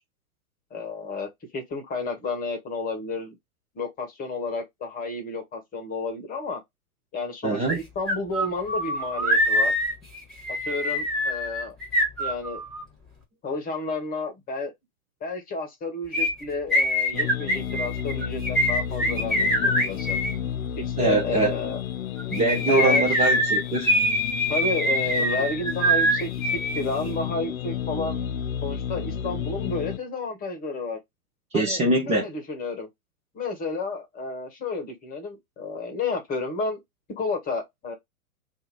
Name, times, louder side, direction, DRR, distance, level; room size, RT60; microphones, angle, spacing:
voice 1, 0.7-3.3 3.7-6.6 7.1-9.7 10.6-11.7 12.2-12.6 13.4-14.7 15.2-20.2 20.7-21.8 22.7-23.3 24.5-26.3 26.7-28.2 28.6-31.0 31.5-31.8 32.1-32.9 33.3-36.8 37.2-37.9, left 3 dB, 20° left, 1.2 m, -31 dB
voice 2, 7.4-7.8 21.0-21.5 22.3-23.9 31.5-32.2, right 3 dB, 15° right, 0.7 m, -23 dB
sound 1, 7.7-7.8 8.1-12.8 16.1-20.3 22.2-26.8 27.1-27.2, equal, ahead, 1.6 m, -24 dB
sound 2, 17.1-30.0, left 9 dB, 70° left, 0.6 m, -32 dB
2.8 x 2.6 x 3.9 m
figure-of-eight pair, 110°, 44 cm